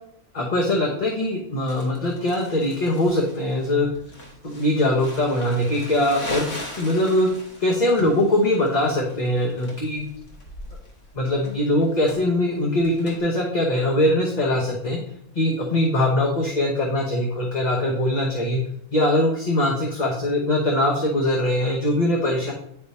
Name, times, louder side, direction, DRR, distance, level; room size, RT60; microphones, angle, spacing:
voice 1, 0.3-3.9 4.4-6.5 6.7-7.3 7.6-10.0 11.1-15.0 15.3-18.6 18.9-22.5, left 1 dB, 40° left, -2 dB, 1.0 m, -22 dB
Crumpling crinkling, 1.7-13.2, left 1 dB, 60° left, 1.5 m, -40 dB
9.3 x 3.5 x 4.1 m, 0.69 s
omnidirectional pair, 1.3 m